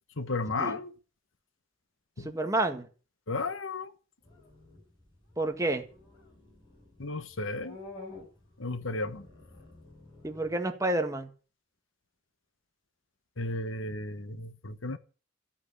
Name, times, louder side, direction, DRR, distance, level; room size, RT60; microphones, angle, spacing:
voice 1, 0.2-0.9 2.2-2.3 3.3-3.9 7.0-7.8 8.6-9.3 13.4-15.0, left 2 dB, 70° left, 1.2 m, -33 dB
voice 2, 2.2-2.9 5.4-5.9 10.2-11.3, right 2 dB, 15° right, 1.9 m, -29 dB
sound 1, 4.2-10.5, left 2 dB, 25° left, 7.2 m, -50 dB
14.5 x 8.6 x 8.3 m
head